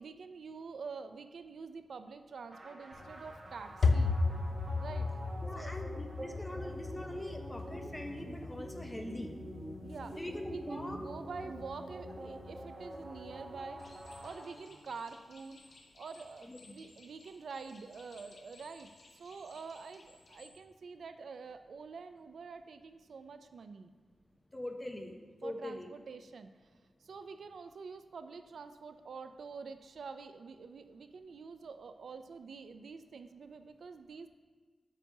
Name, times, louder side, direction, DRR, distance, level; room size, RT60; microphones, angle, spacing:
voice 1, 0.0-4.2 4.8-5.1 5.5-5.8 9.8-23.9 25.4-26.7 27.0-34.3, right 5 dB, 65° right, 9 dB, 0.3 m, -47 dB
sound 1, 2.5-15.1, right 1 dB, 40° right, 1.0 m, -47 dB
sound 2, 2.9-14.3, left 3 dB, 50° left, 0.4 m, -37 dB
voice 2, 5.4-9.3 10.1-11.0 16.4-16.8 24.5-25.1 25.4-25.9, left 1 dB, 10° left, 3 dB, 0.6 m, -42 dB
sound 3, 13.8-20.5, left 3 dB, 90° left, 1.0 m, -60 dB
9.0 x 7.2 x 2.7 m, 1.4 s
wide cardioid pair, 165°, 0 cm